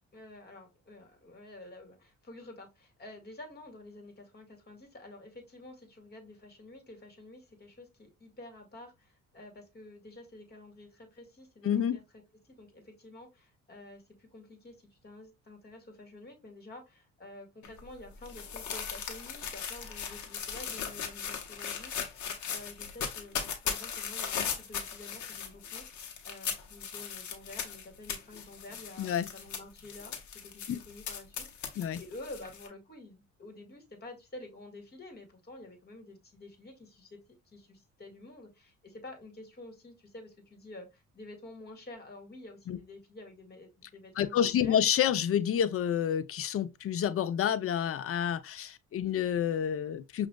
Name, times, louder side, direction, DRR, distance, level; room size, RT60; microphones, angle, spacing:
voice 1, 0.1-12.0 12.4-37.2 37.5-44.8, left 2 dB, 35° left, 1.7 m, -49 dB
voice 2, 11.6-12.0 29.0-29.3 30.7-30.8 31.8-32.0 42.7-42.8 44.2-50.3, left 9 dB, 50° left, 0.5 m, -29 dB
sound 1, 17.6-32.7, left 7 dB, 70° left, 1.0 m, -38 dB
6.0 x 2.5 x 2.2 m
cardioid pair, 90°, 30 cm